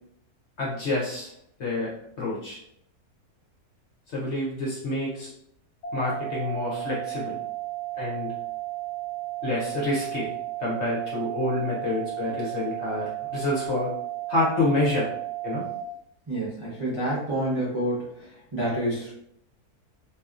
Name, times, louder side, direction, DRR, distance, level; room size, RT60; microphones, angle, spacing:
voice 1, 0.6-1.3 1.6-1.9 2.2-2.6 4.1-5.3 5.9-7.3 8.0-8.3 9.4-10.3 10.6-13.9 14.3-15.1 15.4-15.6, left 2 dB, 55° left, -6 dB, 0.9 m, -28 dB
sound 1, 5.8-15.8, right 16 dB, 85° left, 1.2 m, -34 dB
voice 2, 16.3-19.1, right 1 dB, 30° right, -8 dB, 0.6 m, -28 dB
2.8 x 2.7 x 2.4 m, 0.71 s
omnidirectional pair, 1.7 m